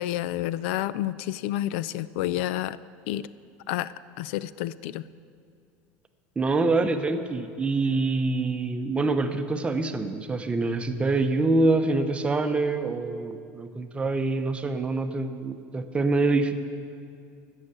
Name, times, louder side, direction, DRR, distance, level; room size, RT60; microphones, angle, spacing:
voice 1, 0.0-2.8 3.1-3.3 3.7-5.0, left 14 dB, 80° left, 18 dB, 0.3 m, -30 dB
voice 2, 6.4-16.5, right 3 dB, 20° right, 8 dB, 0.8 m, -25 dB
15.5 x 6.6 x 7.5 m, 2.4 s
supercardioid pair, 115°, 6 cm